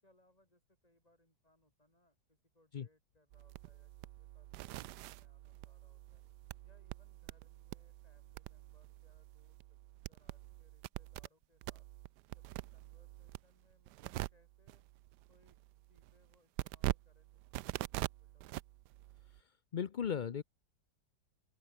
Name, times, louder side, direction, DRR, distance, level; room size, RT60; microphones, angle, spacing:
voice 1, 0.0-3.9 4.2-6.2 6.6-9.8 10.0-11.9 12.3-14.8 15.3-15.6 15.9-18.7, left 1 dB, 20° left, 6.3 m, -73 dB
sound 1, 3.3-11.3 11.6-19.4, right 16 dB, 80° right, 1.2 m, -45 dB
voice 2, 19.7-20.4, left 7 dB, 75° left, 0.4 m, -36 dB
omnidirectional pair, 1.8 m